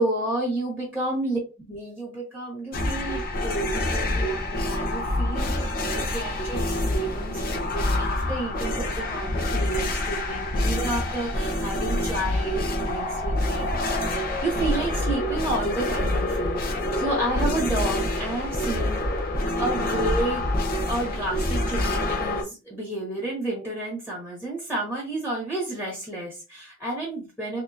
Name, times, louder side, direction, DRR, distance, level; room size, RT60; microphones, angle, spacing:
voice 1, 0.0-1.4 1.7-14.1 14.4-16.6 16.9-19.3 19.6-20.4 20.8-27.6, right 2 dB, 5° left, -3 dB, 1.1 m, -31 dB
sound 1, 2.7-22.4, left 1 dB, 50° left, 0.7 m, -26 dB
3.2 x 2.8 x 2.5 m, 0.30 s
head